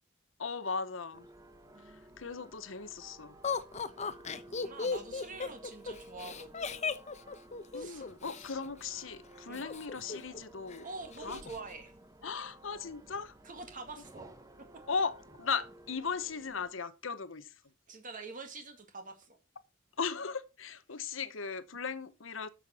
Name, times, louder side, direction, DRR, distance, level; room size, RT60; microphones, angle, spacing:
voice 1, 0.4-1.3 1.8-3.4 7.7-10.9 11.2-11.4 12.2-13.4 14.9-17.5 20.0-22.5, left 5 dB, 80° left, 1.1 m, -37 dB
sound 1, 1.1-16.7, right 1 dB, 20° right, 1.2 m, -55 dB
voice 2, 1.7-2.1 4.3-6.9 7.7-8.0 9.5-9.7 10.8-11.9 13.4-14.3 17.9-19.4, right 3 dB, 45° right, 1.9 m, -46 dB
Laughter, 3.4-8.5 9.5-10.4 10.7-10.8 11.1-11.6, left 5 dB, 35° left, 0.9 m, -36 dB
13.0 x 6.7 x 4.3 m
head